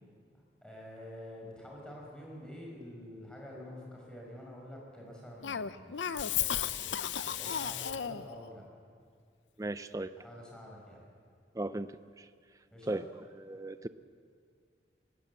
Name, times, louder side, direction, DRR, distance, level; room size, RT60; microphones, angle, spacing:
voice 1, 0.6-6.0 6.3-8.6 10.2-11.0 12.7-13.1, left 1 dB, 5° left, -2 dB, 4.9 m, -48 dB
Cough, 5.4-8.4, left 9 dB, 90° left, 0.6 m, -34 dB
voice 2, 9.6-10.1 11.5-12.3 12.9-13.0 13.5-13.9, right 2 dB, 20° right, 12 dB, 0.4 m, -36 dB
20.0 x 18.0 x 8.1 m, 2.2 s
head